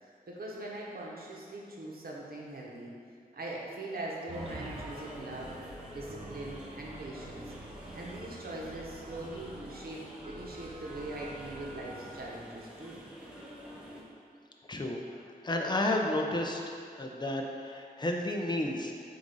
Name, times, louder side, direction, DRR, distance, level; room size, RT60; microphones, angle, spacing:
voice 1, 0.0-2.9 3.3-5.5 5.9-7.5 7.9-13.0, right 1 dB, 75° right, -3 dB, 1.1 m, -42 dB
sound 1, 4.3-14.0, equal, 5° right, 0.9 m, -48 dB
sound 2, 4.3-12.3, right 2 dB, 40° right, 0.6 m, -47 dB
voice 2, 14.7-16.6 17.0-18.9, left 1 dB, 30° left, 1 dB, 0.6 m, -32 dB
7.7 x 2.7 x 5.4 m, 2.3 s
wide cardioid pair, 115°, 16 cm